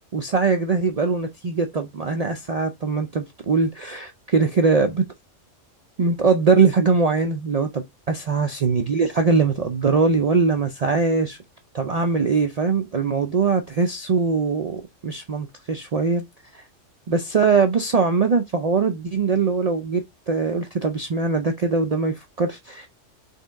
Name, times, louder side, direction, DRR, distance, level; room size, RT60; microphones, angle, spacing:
voice 1, 0.1-5.1 6.0-11.4 11.7-16.2 16.5-16.6 17.1-22.9, right 4 dB, 60° right, 0.4 m, -21 dB
4.2 x 3.4 x 3.6 m
omnidirectional pair, 1.3 m